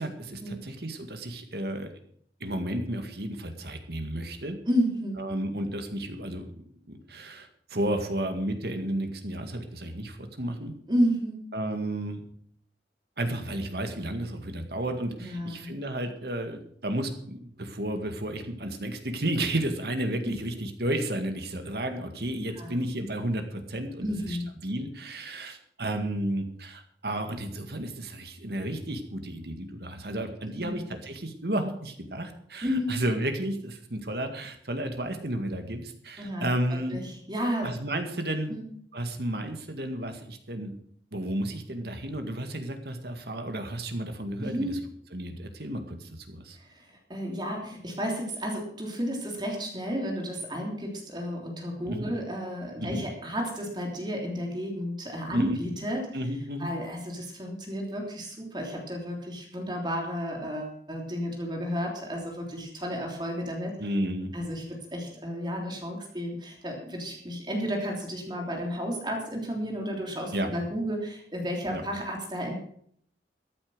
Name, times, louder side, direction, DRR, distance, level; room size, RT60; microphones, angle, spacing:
voice 1, 0.0-1.9 2.4-4.6 5.2-10.7 11.5-12.2 13.2-37.0 37.6-38.5 38.9-40.7 41.1-44.7 45.1-46.6 51.9-52.1 52.8-53.1 55.3-55.6 56.1-56.7 63.8-64.3 70.3-70.5 71.7-71.8, right 1 dB, 65° right, 6 dB, 2.0 m, -32 dB
voice 2, 4.7-5.2 10.9-11.4 15.2-15.7 20.2-20.3 22.5-22.8 24.0-24.5 30.6-30.8 32.6-33.0 36.2-37.7 38.5-38.6 44.4-44.8 46.5-56.0 56.6-63.7 64.3-72.5, equal, 25° right, 1 dB, 3.2 m, -32 dB
14.0 x 8.8 x 6.3 m, 0.62 s
head